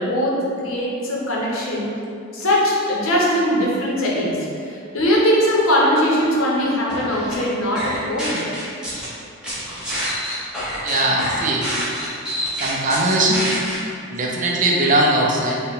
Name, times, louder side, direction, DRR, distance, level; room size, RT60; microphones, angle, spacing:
voice 1, 0.0-1.9 2.3-8.4, equal, 70° left, -4 dB, 0.7 m, -20 dB
sound 1, 6.9-7.3 7.7-9.1 9.4-13.7, equal, 5° right, 0.8 m, -27 dB
voice 2, 10.8-11.6 12.6-13.4 14.1-15.6, right 1 dB, 35° right, -2 dB, 0.4 m, -19 dB
4.2 x 2.2 x 3.6 m, 2.5 s
head